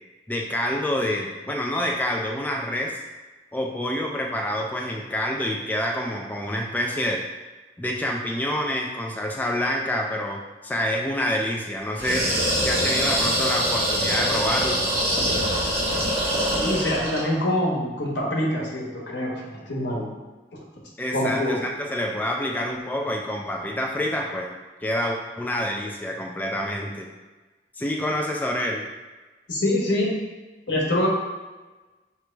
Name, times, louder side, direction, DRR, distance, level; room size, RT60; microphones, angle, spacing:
voice 1, 0.3-3.0 3.5-7.2 7.8-12.3 12.6-14.8 21.0-24.5 24.8-27.1 27.8-28.8, left 1 dB, 10° left, 0 dB, 0.3 m, -27 dB
sound 1, 12.0-17.3, equal, 35° right, 1.2 m, -24 dB
voice 2, 16.6-20.1 21.1-21.6 29.5-30.2 30.7-31.1, left 1 dB, 80° left, -3 dB, 1.1 m, -25 dB
4.9 x 3.1 x 3.3 m, 1.2 s
head